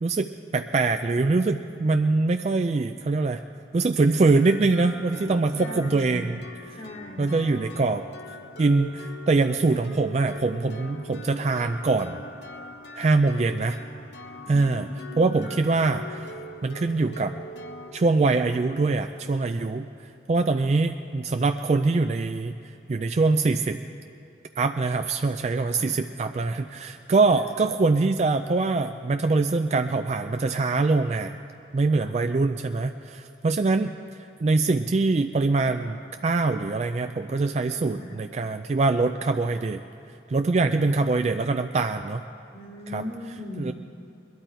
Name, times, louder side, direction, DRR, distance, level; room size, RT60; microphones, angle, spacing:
voice 1, 0.0-3.4 3.7-6.2 7.2-8.0 8.6-12.2 13.0-13.8 14.5-14.9 15.2-16.3 16.6-17.4 17.9-19.9 20.3-22.6 22.9-23.8 24.6-31.4 31.7-33.9 34.4-39.8 40.3-42.2 42.9-43.0 43.6-43.7, right 3 dB, 40° right, 7 dB, 0.3 m, -23 dB
sound 1, 4.3-19.9, left 1 dB, 80° left, 0.9 m, -43 dB
voice 2, 5.5-6.3 6.7-7.4 14.4-15.6 20.5-20.7 25.6-25.9 27.3-27.4 32.0-32.2 37.8-38.2 42.5-43.7, left 2 dB, 50° left, 0 dB, 1.9 m, -39 dB
21.5 x 12.5 x 4.5 m, 2.7 s
head